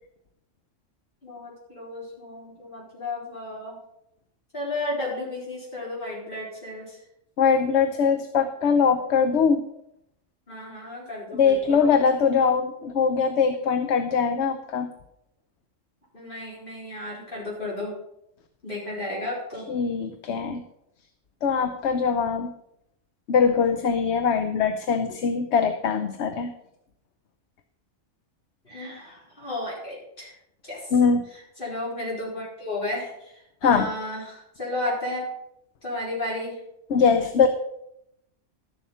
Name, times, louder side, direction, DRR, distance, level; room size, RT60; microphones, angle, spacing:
voice 1, 1.2-3.8 4.5-7.0 10.5-11.9 16.1-18.0 18.6-19.7 28.6-30.3 30.6-30.9 31.6-35.2 35.8-36.6, left 2 dB, 45° left, -5 dB, 4.7 m, -33 dB
voice 2, 7.4-9.6 11.3-14.9 19.7-20.6 21.4-22.5 23.3-26.5 30.9-31.2 33.6-33.9 36.9-37.5, left 6 dB, 65° left, 8 dB, 1.0 m, -22 dB
12.5 x 7.1 x 5.6 m, 0.79 s
omnidirectional pair, 1.3 m